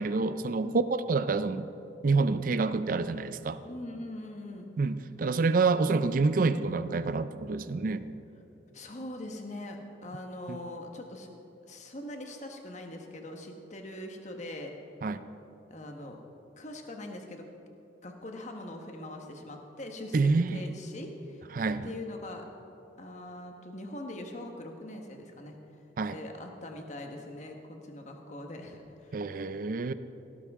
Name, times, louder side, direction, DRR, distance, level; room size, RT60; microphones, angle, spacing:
voice 1, 0.0-1.7 2.0-3.6 4.8-8.0 10.5-10.6 15.0-15.2 20.1-20.6 21.5-21.9 26.0-26.2 29.1-29.9, right 4 dB, 45° right, 12 dB, 0.4 m, -27 dB
voice 2, 3.6-4.7 8.7-11.3 11.6-14.7 15.7-16.2 16.6-17.4 18.0-21.4 21.8-22.4 23.0-25.6 26.1-29.2, left 1 dB, 40° left, 3 dB, 1.3 m, -42 dB
17.5 x 12.5 x 3.6 m, 3.0 s
head